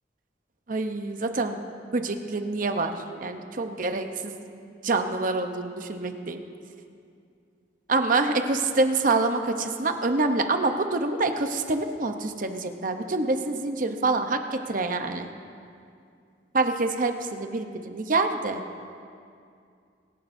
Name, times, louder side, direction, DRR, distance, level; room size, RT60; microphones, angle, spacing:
voice 1, 0.7-1.6 1.9-2.9 3.2-4.4 4.8-6.4 7.9-15.3 16.5-18.6, right 3 dB, 50° right, 6 dB, 0.8 m, -26 dB
25.5 x 11.5 x 2.7 m, 2.4 s
head